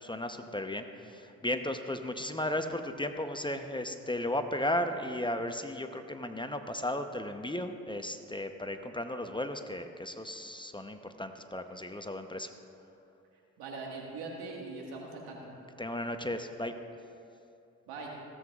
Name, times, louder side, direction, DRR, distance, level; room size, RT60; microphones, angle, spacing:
voice 1, 0.0-12.5 15.8-16.7, left 1 dB, 15° left, 7 dB, 0.8 m, -35 dB
voice 2, 13.6-15.4 17.9-18.1, right 3 dB, 80° right, -1 dB, 1.8 m, -41 dB
16.5 x 8.1 x 2.4 m, 2.6 s
hypercardioid pair, 45°, 37 cm